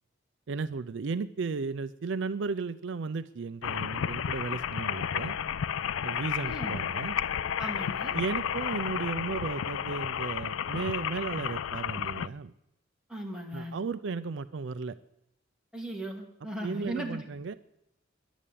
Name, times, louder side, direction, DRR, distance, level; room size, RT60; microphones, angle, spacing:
voice 1, 0.5-5.4 6.0-7.2 8.1-12.5 13.5-15.0 16.6-17.5, right 4 dB, 65° right, 13 dB, 0.4 m, -35 dB
sound 1, 3.6-12.3, left 8 dB, 85° left, 0.4 m, -32 dB
voice 2, 6.4-6.8 7.6-8.2 13.1-13.8 15.7-17.2, right 1 dB, 5° right, -2 dB, 2.3 m, -37 dB
11.0 x 9.1 x 8.5 m, 0.83 s
head